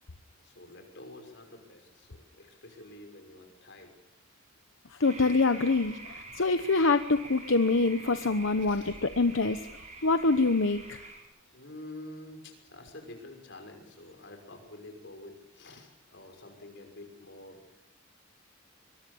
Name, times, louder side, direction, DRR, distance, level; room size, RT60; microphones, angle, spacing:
voice 1, 0.4-3.9 8.6-8.9 11.5-17.6, left 2 dB, 60° left, 5 dB, 5.9 m, -48 dB
voice 2, 5.0-9.7 10.0-11.0, left 3 dB, 85° left, 9 dB, 1.0 m, -25 dB
sound 1, 5.0-11.2, right 3 dB, 35° right, 6.3 m, -46 dB
23.5 x 23.0 x 7.1 m, 0.81 s
head